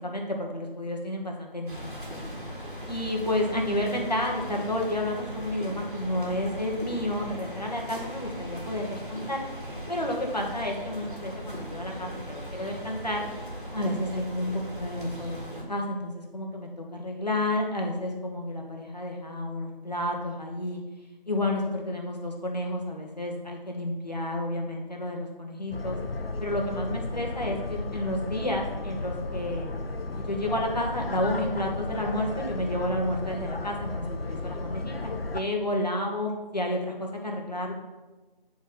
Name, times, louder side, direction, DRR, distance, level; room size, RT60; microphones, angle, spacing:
voice 1, 0.0-2.3 2.9-9.4 9.9-13.2 13.7-20.8 21.3-26.0 26.4-29.7 30.2-37.7, left 1 dB, 45° left, 0 dB, 1.2 m, -31 dB
sound 1, 1.7-15.6, equal, 60° right, 2.1 m, -39 dB
sound 2, 25.7-35.4, left 2 dB, 80° left, 0.7 m, -34 dB
8.5 x 4.1 x 4.0 m, 1.2 s
figure-of-eight pair, 175°, 29 cm